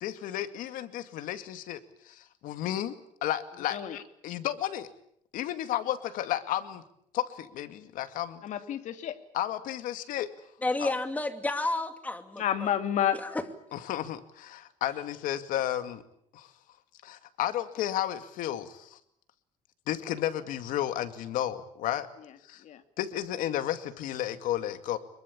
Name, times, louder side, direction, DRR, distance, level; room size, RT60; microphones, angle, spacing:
voice 1, 0.0-1.8 2.0-3.0 3.2-4.9 5.3-6.8 7.1-8.4 9.3-10.3 10.8-11.0 13.7-16.0 16.3-16.5 17.0-19.0 19.9-22.1 22.5-22.6 23.0-25.0, left 12 dB, 80° left, 10 dB, 2.3 m, -32 dB
voice 2, 8.4-9.2 12.4-13.2 22.6-22.8, left 10 dB, 60° left, 9 dB, 2.5 m, -29 dB
voice 3, 10.6-12.7 13.1-13.4, left 2 dB, 10° left, 8 dB, 2.5 m, -31 dB
25.5 x 22.5 x 8.6 m, 0.71 s
cardioid pair, 140°, 14 cm